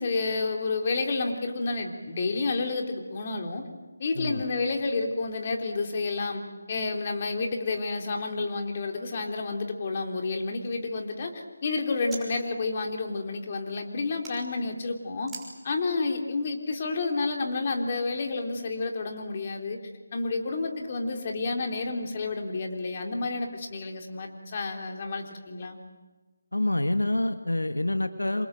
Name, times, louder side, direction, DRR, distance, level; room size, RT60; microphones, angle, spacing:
voice 1, 0.0-3.6 4.0-6.4 6.7-15.3 15.6-19.8 20.1-25.8, left 3 dB, 35° left, 3 dB, 3.7 m, -30 dB
sound 1, 10.1-12.3 12.6-14.4 15.2-15.5, right 3 dB, 5° right, 6.0 m, -48 dB
voice 2, 26.5-28.5, left 1 dB, 90° left, 8 dB, 1.8 m, -27 dB
28.0 x 27.0 x 7.7 m, 1.3 s
figure-of-eight pair, 160°, 0 cm